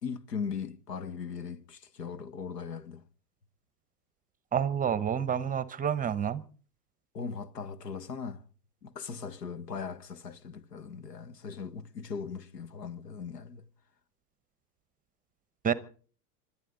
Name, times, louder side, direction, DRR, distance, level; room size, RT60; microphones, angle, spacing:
voice 1, 0.0-3.0 7.1-8.4 8.8-13.6, left 6 dB, 90° left, 1.6 m, -39 dB
voice 2, 4.5-6.4 15.6-15.7, right 8 dB, 15° right, 0.9 m, -28 dB
26.0 x 12.0 x 3.9 m
hypercardioid pair, 110°, 47 cm